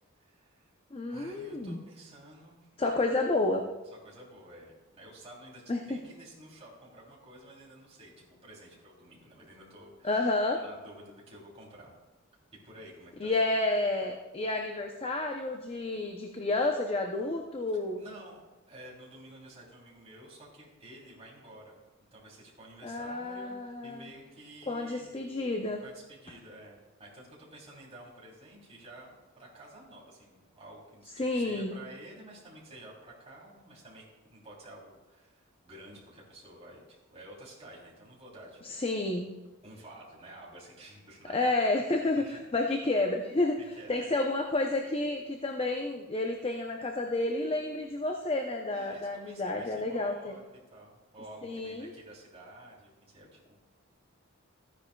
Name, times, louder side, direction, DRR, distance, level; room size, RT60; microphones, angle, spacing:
voice 1, 0.2-0.7 1.1-2.7 3.8-11.9 12.5-13.4 18.0-18.4 18.7-21.8 22.1-25.0 25.8-38.8 39.6-41.5 42.2-42.4 43.7-44.2 48.7-50.5 50.7-53.5, right 1 dB, 30° right, -4 dB, 3.2 m, -51 dB
voice 2, 0.9-1.8 2.8-3.6 5.7-6.0 10.0-10.6 13.2-18.0 22.8-24.1 24.7-25.8 31.2-31.8 38.6-39.3 41.3-43.6 43.9-50.3 51.4-51.9, left 2 dB, 25° left, 3 dB, 0.6 m, -30 dB
14.0 x 9.7 x 2.3 m, 1.2 s
head